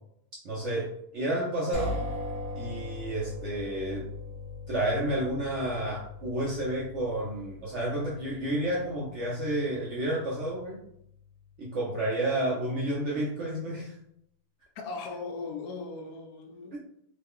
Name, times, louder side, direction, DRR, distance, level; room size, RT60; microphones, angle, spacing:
voice 1, 0.4-2.0 2.5-4.1 4.7-10.8 11.6-13.9 16.7-16.8, right 1 dB, 60° right, -5 dB, 0.7 m, -30 dB
sound 1, 1.7-11.5, left 2 dB, 25° right, 0.9 m, -40 dB
voice 2, 14.7-16.8, left 4 dB, 75° left, 4 dB, 1.1 m, -38 dB
3.1 x 2.1 x 3.5 m, 0.73 s
omnidirectional pair, 1.8 m